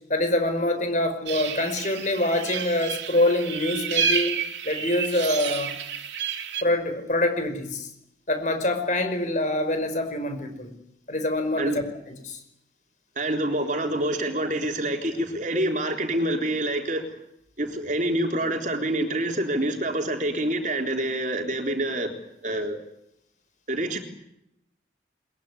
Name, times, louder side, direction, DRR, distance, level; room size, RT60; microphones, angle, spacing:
voice 1, 0.0-4.3 4.6-5.7 6.6-7.9 8.3-10.7 11.1-11.8 12.2-12.4, left 1 dB, 40° left, 7 dB, 5.2 m, -25 dB
sound 1, 1.3-6.6, right 7 dB, 75° right, 2.7 m, -30 dB
voice 2, 13.2-17.1 17.6-22.1 22.4-22.8 23.7-24.0, right 1 dB, 45° right, 4 dB, 3.8 m, -26 dB
22.0 x 22.0 x 9.9 m, 0.77 s
head